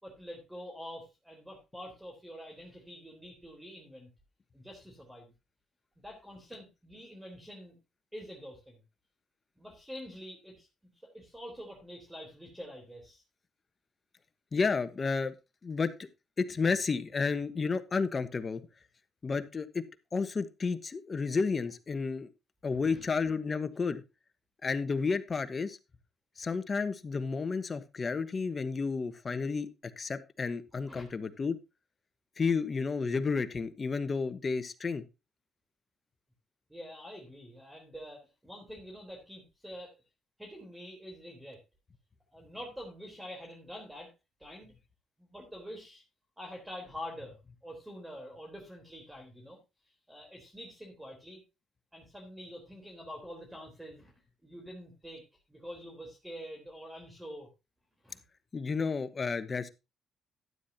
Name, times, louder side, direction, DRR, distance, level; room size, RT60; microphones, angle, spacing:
voice 1, 0.0-4.1 4.5-5.3 6.0-7.8 8.1-8.8 9.6-10.7 11.0-13.2 22.8-23.3 30.9-31.1 36.7-39.9 40.4-41.6 42.3-44.1 44.4-44.8 45.2-46.0 46.4-49.6 50.1-51.4 51.9-54.1 54.4-57.5 58.0-58.2, equal, 10° right, 1 dB, 3.7 m, -46 dB
voice 2, 14.5-15.3 15.6-16.1 16.4-18.6 19.2-19.8 20.1-22.3 22.6-24.0 24.6-25.8 26.4-29.7 30.0-31.6 32.4-35.0 58.5-59.7, left 4 dB, 35° left, 12 dB, 1.2 m, -31 dB
12.5 x 9.6 x 2.8 m, 0.26 s
cardioid pair, 90°, 0 cm